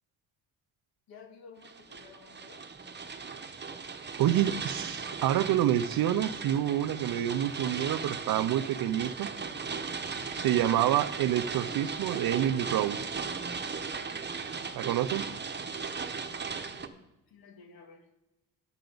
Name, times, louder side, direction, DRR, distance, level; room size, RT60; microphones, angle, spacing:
voice 1, 1.1-2.7 16.7-17.0 17.3-18.1, left 5 dB, 80° left, 3 dB, 2.0 m, -53 dB
sound 1, 1.6-16.9, right 5 dB, 30° right, 0.9 m, -37 dB
voice 2, 4.2-9.3 10.3-13.1 14.7-15.3, right 12 dB, 70° right, 16 dB, 0.6 m, -28 dB
12.0 x 9.2 x 3.9 m, 0.99 s
cardioid pair, 90°, 36 cm